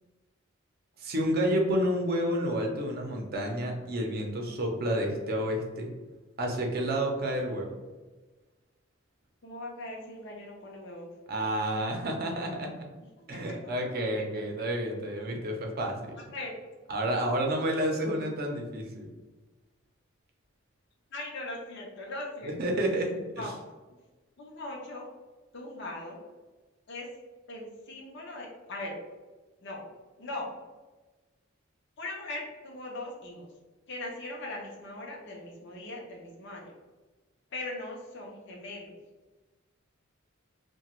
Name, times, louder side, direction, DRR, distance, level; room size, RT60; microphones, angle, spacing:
voice 1, 1.0-5.9 6.4-7.7 11.3-12.7 13.3-16.2 16.9-19.1 22.4-23.5, right 1 dB, 50° right, 1 dB, 0.6 m, -30 dB
voice 2, 9.4-11.1 13.3-13.9 16.3-16.5 21.1-22.6 23.3-23.5 24.4-25.1 25.5-26.2 26.9-27.1 27.5-29.0 29.6-29.9 30.2-30.5 32.0-33.5 33.9-36.7 37.5-39.0, left 2 dB, 60° left, -2 dB, 0.6 m, -40 dB
2.9 x 2.2 x 2.9 m, 1.2 s
head